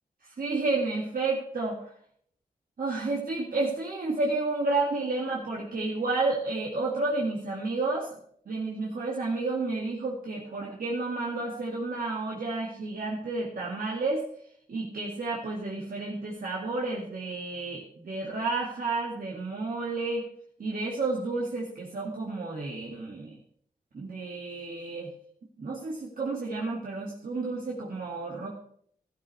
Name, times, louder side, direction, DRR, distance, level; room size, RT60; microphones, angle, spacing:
voice 1, 0.4-1.9 2.8-8.1 8.5-14.2 14.7-20.2 20.6-23.4 23.9-25.1 25.6-28.5, right 3 dB, 60° right, -3 dB, 2.1 m, -31 dB
13.0 x 12.5 x 3.3 m, 0.65 s
wide cardioid pair, 80°, 16 cm